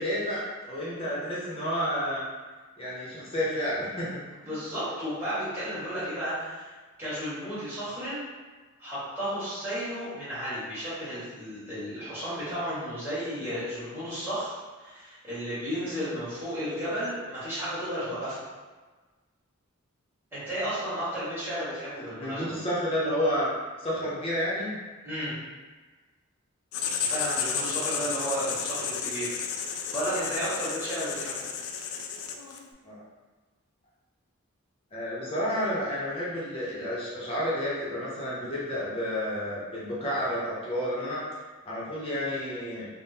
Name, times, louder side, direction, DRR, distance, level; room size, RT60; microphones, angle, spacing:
voice 1, 0.0-2.2 2.8-4.5 22.0-23.5 23.8-24.8 32.8-33.0 34.9-41.2 41.7-42.9, equal, 25° left, -7 dB, 0.6 m, -30 dB
voice 2, 4.5-6.7 7.0-8.2 8.8-14.5 14.8-18.4 20.3-22.5 25.0-25.3 27.0-31.5, equal, 10° right, -14 dB, 1.5 m, -33 dB
Writing, 26.7-32.7, left 6 dB, 75° left, 0.3 m, -32 dB
3.5 x 2.0 x 2.7 m, 1.3 s
head